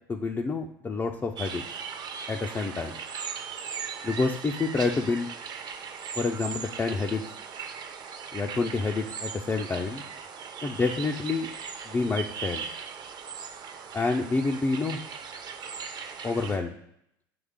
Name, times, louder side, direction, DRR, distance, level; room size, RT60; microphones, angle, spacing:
voice 1, 0.1-1.6 2.3-2.9 4.0-5.3 6.2-7.2 8.3-10.0 10.6-11.5 11.9-12.7 13.9-15.0 16.2-16.7, left 3 dB, 20° left, 2 dB, 0.5 m, -28 dB
sound 1, 1.4-16.6, right 6 dB, 35° right, 0.7 m, -38 dB
8.6 x 3.2 x 3.6 m, 0.77 s
hypercardioid pair, 90°, 12 cm